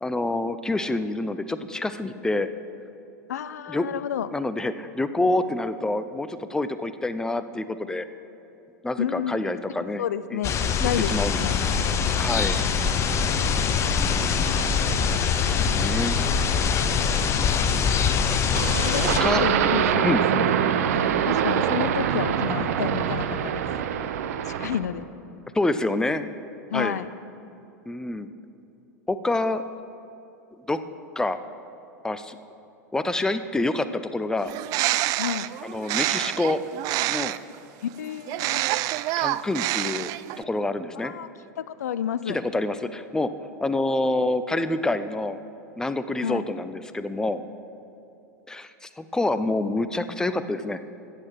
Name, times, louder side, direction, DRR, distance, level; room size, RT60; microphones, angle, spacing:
voice 1, 0.0-2.5 3.7-3.9 4.3-8.1 8.8-10.0 10.3-10.4 11.1-11.4 12.0-12.6 13.9-14.3 15.7-16.2 19.2-19.8 20.0-20.2 25.5-26.3 26.7-27.0 27.9-28.3 29.1-29.6 30.7-30.8 31.2-31.4 32.0-32.4 32.9-34.5 35.6-36.6 37.1-37.4 39.2-40.1 40.4-41.1 42.3-43.3 43.6-45.4 45.8-47.4 48.5-50.8, left 2 dB, 5° left, 12 dB, 0.6 m, -27 dB
voice 2, 3.3-4.3 9.0-9.5 9.8-11.6 18.8-20.5 20.8-23.7 24.5-25.1 26.7-27.1 35.2-35.5 37.8-38.6 41.0-41.3 41.6-42.4 46.2-46.4, left 9 dB, 70° left, 15 dB, 0.5 m, -30 dB
sound 1, 10.4-19.2, left 6 dB, 30° left, 0.9 m, -23 dB
sound 2, 18.5-24.9, right 9 dB, 65° right, 0.8 m, -24 dB
Bird, 34.4-37.6 38.3-40.4, right 17 dB, 40° right, 0.3 m, -27 dB
14.0 x 8.6 x 5.9 m, 2.8 s
figure-of-eight pair, 90°, 9 cm